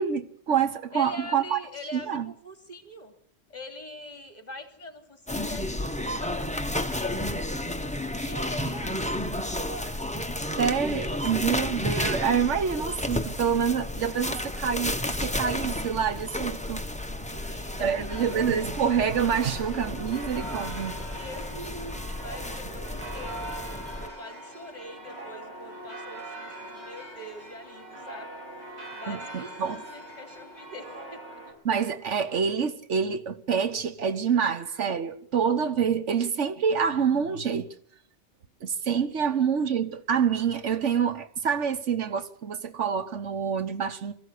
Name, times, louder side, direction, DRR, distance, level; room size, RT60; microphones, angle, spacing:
voice 1, 0.0-1.6 1.9-2.3 10.6-16.8 17.8-21.0 29.1-29.8 31.6-37.7 38.6-44.1, right 7 dB, 85° right, 1.5 m, -27 dB
voice 2, 0.9-3.1 3.5-7.4 8.2-9.1 9.5-10.1 10.8-11.2 17.2-17.9 21.1-28.4 28.9-31.4 39.3-39.4, left 1 dB, 35° left, 3.2 m, -43 dB
sound 1, 5.3-24.1, left 1 dB, 5° left, 0.9 m, -32 dB
sound 2, 18.1-31.5, right 1 dB, 70° right, 6.6 m, -41 dB
22.5 x 15.0 x 8.4 m
omnidirectional pair, 1.2 m